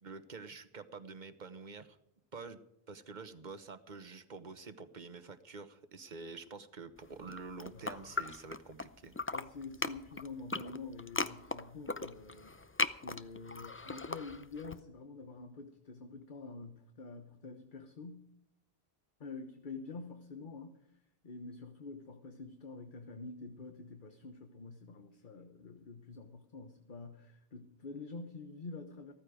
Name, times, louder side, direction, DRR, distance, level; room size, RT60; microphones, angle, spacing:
voice 1, 0.0-2.0 2.3-2.6 2.9-9.1, right 4 dB, 45° right, 11 dB, 1.2 m, -47 dB
sound 1, 7.2-8.9 9.1-14.8, left 3 dB, 20° left, 0.4 m, -38 dB
voice 2, 7.7-8.0 9.3-12.5 13.0-18.3 19.2-20.8 21.2-29.1, left 3 dB, 50° left, 7 dB, 1.2 m, -47 dB
15.0 x 14.0 x 5.1 m, 0.79 s
omnidirectional pair, 1.1 m